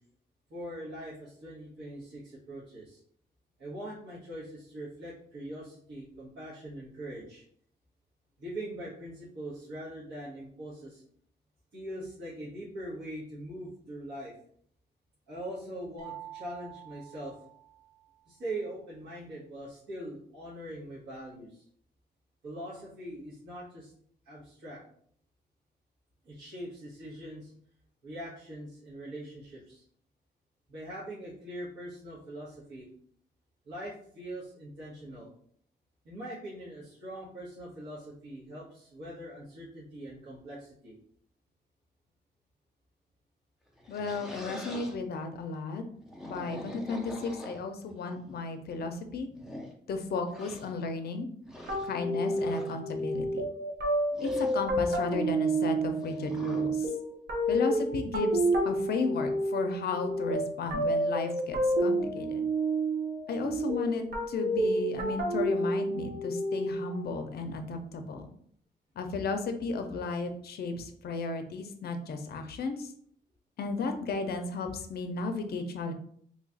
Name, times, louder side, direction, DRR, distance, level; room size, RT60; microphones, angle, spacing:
voice 1, 0.5-3.0 3.6-7.4 8.4-11.0 11.7-14.3 15.3-17.3 18.3-21.6 22.4-23.9 24.2-24.8 26.2-27.5 28.0-29.8 30.7-32.9 33.6-35.3 36.0-40.9, right 1 dB, 90° right, -9 dB, 1.2 m, -42 dB
sound 1, 16.0-18.1, right 12 dB, 20° right, 0.9 m, -47 dB
sound 2, 43.7-45.0 46.0-47.9 48.7-48.8 49.3-49.7 50.3-50.7 51.4-51.9 52.3-52.8 54.1-54.6 56.0-56.7, left 1 dB, 5° right, 0.4 m, -44 dB
voice 2, 43.9-45.8 46.2-49.3 49.9-51.3 51.8-53.4 54.2-56.9 57.5-62.4 63.3-68.3 69.0-72.9 73.6-75.9, left 3 dB, 65° left, 6 dB, 0.5 m, -34 dB
sound 3, 51.7-67.0, right 1 dB, 65° right, 0.8 m, -29 dB
3.1 x 2.3 x 3.9 m, 0.62 s
wide cardioid pair, 170°, 18 cm